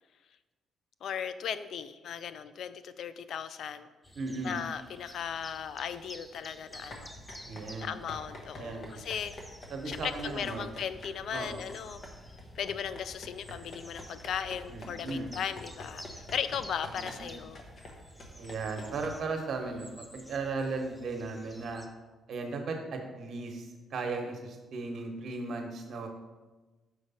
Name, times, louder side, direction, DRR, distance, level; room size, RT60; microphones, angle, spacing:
voice 1, 1.0-3.9 4.4-7.1 7.8-9.3 9.9-12.0 12.6-17.6, left 8 dB, 70° left, 13 dB, 0.3 m, -37 dB
sound 1, 4.0-21.9, equal, 5° left, 0.6 m, -53 dB
voice 2, 4.1-4.6 7.4-8.0 8.6-9.1 9.7-10.7 11.3-11.6 14.7-15.3 16.9-17.3 18.4-21.9 22.3-26.1, right 3 dB, 60° right, 3 dB, 1.1 m, -36 dB
sound 2, 6.7-19.1, left 1 dB, 50° left, 1.1 m, -47 dB
6.2 x 3.2 x 5.5 m, 1.2 s
cardioid pair, 90°, 0 cm